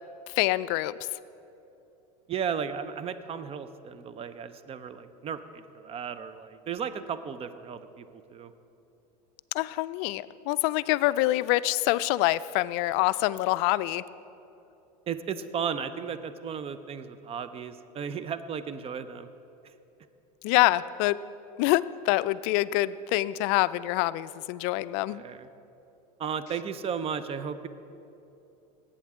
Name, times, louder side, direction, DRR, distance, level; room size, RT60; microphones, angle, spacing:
voice 1, 0.4-0.9 9.5-14.0 20.4-21.2 21.6-25.2, left 17 dB, 60° left, 16 dB, 0.4 m, -25 dB
voice 2, 2.3-8.5 15.1-19.3 25.1-25.5 26.2-27.7, right 7 dB, 30° right, 12 dB, 0.6 m, -35 dB
18.5 x 8.6 x 3.7 m, 2.9 s
supercardioid pair, 105°, 20 cm